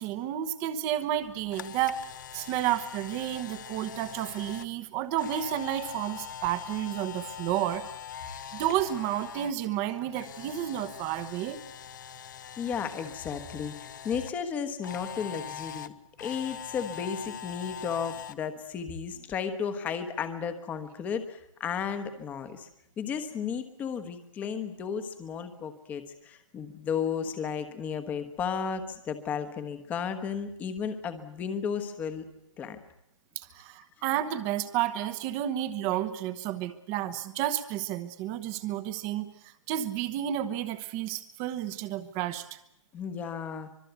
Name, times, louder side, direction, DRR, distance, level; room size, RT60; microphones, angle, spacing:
voice 1, 0.0-2.0 2.3-7.8 8.5-11.6 33.4-42.6, right 12 dB, 15° right, 12 dB, 1.1 m, -31 dB
Camera, 1.2-9.5 9.8-14.3 14.8-18.3, left 9 dB, 35° left, 0.9 m, -42 dB
voice 2, 12.6-15.9 16.2-22.7 23.0-32.2 32.6-32.8 42.9-43.7, left 7 dB, 10° left, 9 dB, 1.2 m, -34 dB
25.0 x 22.0 x 8.1 m, 0.83 s
hypercardioid pair, 170°, 16 cm